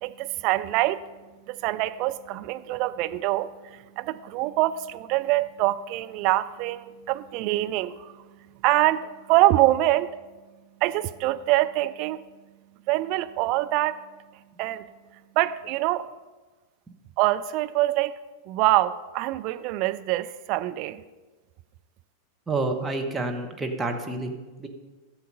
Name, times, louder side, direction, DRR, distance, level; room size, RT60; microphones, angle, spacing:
voice 1, 0.0-1.0 1.5-8.1 8.6-10.1 10.8-12.2 12.9-14.0 14.6-14.8 15.4-16.0 17.2-18.2 18.5-21.0, right 16 dB, 45° right, 11 dB, 0.4 m, -24 dB
voice 2, 22.5-24.7, right 2 dB, 10° right, 3 dB, 1.3 m, -29 dB
11.0 x 7.8 x 5.3 m, 1.3 s
figure-of-eight pair, 90°, 0 cm